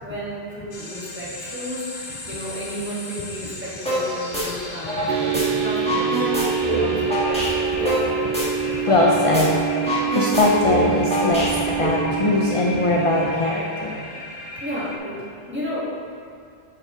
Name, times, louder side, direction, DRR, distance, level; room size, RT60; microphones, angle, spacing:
voice 1, 0.0-8.4 14.6-15.8, equal, 10° right, -9 dB, 1.9 m, -33 dB
sound 1, 0.7-15.0, left 2 dB, 80° left, 1.2 m, -37 dB
sound 2, 3.9-4.0 4.3-5.4 5.7-9.1 9.3-9.4 9.7-11.8, right 1 dB, 5° left, 1.7 m, -25 dB
sound 3, 5.1-13.3, right 8 dB, 65° right, 0.7 m, -26 dB
voice 2, 8.7-9.5 9.9-14.1, left 2 dB, 35° left, -2 dB, 0.6 m, -21 dB
8.9 x 5.7 x 3.8 m, 2.3 s
omnidirectional pair, 1.0 m